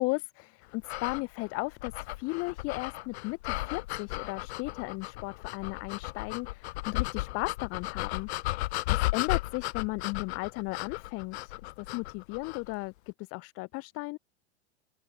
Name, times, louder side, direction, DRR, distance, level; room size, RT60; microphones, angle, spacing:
voice 1, 0.0-8.3 8.9-12.9 13.3-14.2, left 26 dB, 40° left, 1.4 m, -35 dB
sound 1, 0.8-12.7, left 18 dB, 70° left, 0.9 m, -35 dB
open air
supercardioid pair, 140°, 34 cm